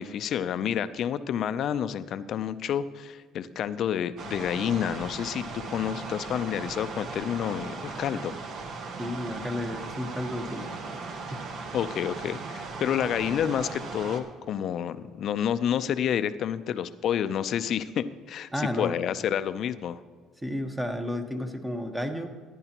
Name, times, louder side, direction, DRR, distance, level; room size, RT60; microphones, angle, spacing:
voice 1, 0.0-8.4 11.7-20.0, left 9 dB, 60° left, 13 dB, 0.5 m, -29 dB
sound 1, 4.2-14.2, right 4 dB, 60° right, 1.1 m, -38 dB
voice 2, 9.0-10.7 11.3-11.4 18.5-18.9 20.4-22.3, left 1 dB, 10° right, 5 dB, 1.1 m, -32 dB
15.0 x 10.0 x 2.9 m, 1.5 s
supercardioid pair, 90°, 0 cm